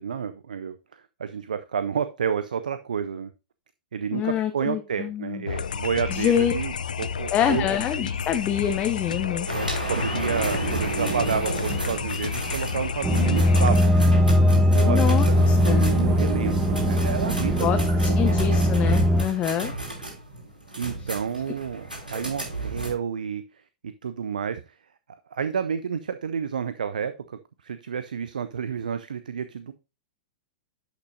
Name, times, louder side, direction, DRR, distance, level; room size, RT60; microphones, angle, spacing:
voice 1, 0.0-3.3 3.9-7.7 9.5-14.2 14.5-18.6 20.8-24.8 25.3-29.7, right 7 dB, 70° right, 12 dB, 0.6 m, -30 dB
voice 2, 4.1-5.4 6.1-6.5 7.3-9.5 14.9-15.9 17.6-19.7 22.1-22.2, left 10 dB, 25° left, 7 dB, 0.8 m, -26 dB
sound 1, 5.5-13.8, left 7 dB, 70° left, 0.5 m, -31 dB
sound 2, 9.5-22.9, right 2 dB, 90° right, 4.3 m, -32 dB
sound 3, 13.0-19.2, left 1 dB, 10° right, 1.1 m, -20 dB
11.5 x 6.1 x 2.6 m, 0.29 s
figure-of-eight pair, 100°, 5 cm